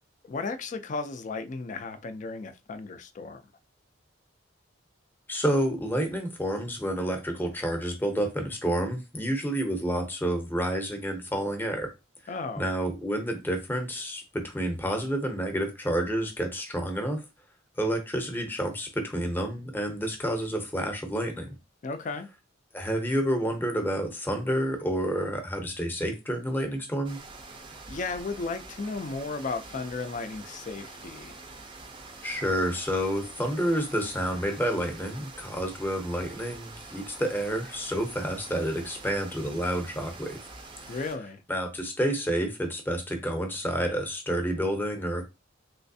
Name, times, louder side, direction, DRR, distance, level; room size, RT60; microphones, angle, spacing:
voice 1, 0.2-3.4 12.3-12.6 21.8-22.3 27.9-31.3 40.9-41.4, left 3 dB, 40° left, 0.4 m, -34 dB
voice 2, 5.3-11.9 12.6-17.2 17.8-21.5 22.7-27.2 32.2-40.4 40.9-41.0 41.5-45.2, equal, 10° left, 0.7 m, -29 dB
sound 1, 27.0-41.2, right 3 dB, 25° right, 0.5 m, -46 dB
3.2 x 3.1 x 2.6 m
head